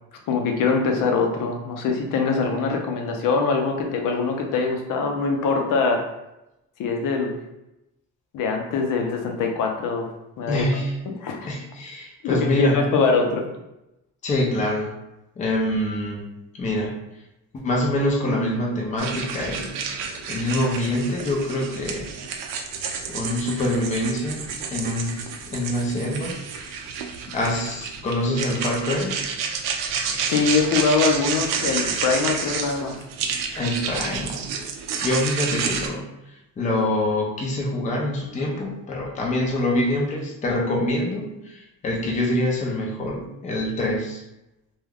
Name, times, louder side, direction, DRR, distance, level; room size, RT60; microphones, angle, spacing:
voice 1, 0.3-6.0 6.8-7.4 8.3-10.1 10.4-10.6 11.1-11.5 12.2-13.5 30.3-33.0, left 4 dB, 70° left, 3 dB, 0.6 m, -23 dB
voice 2, 10.5-10.9 11.4-12.8 14.2-14.9 15.4-16.9 17.5-19.7 20.3-22.1 23.1-24.5 24.7-25.2 25.5-26.4 27.3-29.2 33.5-34.5 35.0-36.1 36.6-44.2, left 1 dB, 25° left, -1 dB, 0.5 m, -25 dB
sound 1, 19.0-35.9, right 6 dB, 75° right, 0.5 m, -30 dB
2.3 x 2.2 x 3.3 m, 0.91 s
cardioid pair, 150°, 33 cm